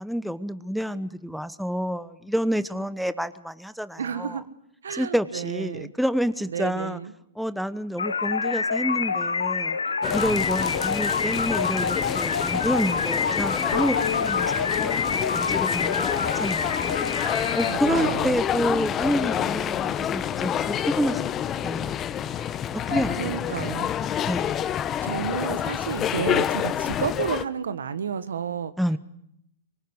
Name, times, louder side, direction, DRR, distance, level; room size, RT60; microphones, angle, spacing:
voice 1, 0.0-4.4 4.9-7.0 7.4-9.8 10.1-14.0 14.2-15.0 15.3-17.0 17.6-21.2 21.6-22.2 22.7-23.8 24.3-24.5 28.8-29.0, equal, ahead, 13 dB, 1.0 m, -28 dB
voice 2, 4.0-4.4 4.8-5.9 6.5-7.1 17.6-18.4 22.4-22.5 22.9-23.9 25.0-28.7, right 7 dB, 80° right, 13 dB, 1.6 m, -31 dB
sound 1, 8.0-17.7, left 5 dB, 90° left, 1.2 m, -27 dB
sound 2, 10.0-27.5, left 10 dB, 25° left, 1.1 m, -28 dB
sound 3, 13.7-17.8, left 9 dB, 70° left, 1.3 m, -37 dB
24.0 x 21.0 x 9.7 m, 0.77 s
hypercardioid pair, 120°, 0 cm